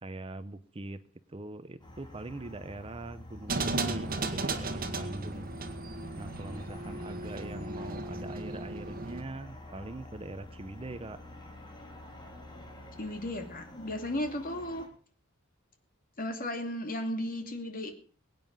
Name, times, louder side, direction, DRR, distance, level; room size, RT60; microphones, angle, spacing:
voice 1, 0.0-1.0 1.3-5.5 6.2-11.2, right 2 dB, 25° right, 12 dB, 0.7 m, -42 dB
sound 1, 1.8-14.9, left 1 dB, 20° left, 3.1 m, -48 dB
sound 2, 3.5-9.2, right 3 dB, 45° right, 1.8 m, -35 dB
voice 2, 13.0-14.9 16.2-17.9, left 1 dB, 45° left, 5 dB, 2.6 m, -35 dB
22.0 x 9.4 x 5.4 m, 0.42 s
head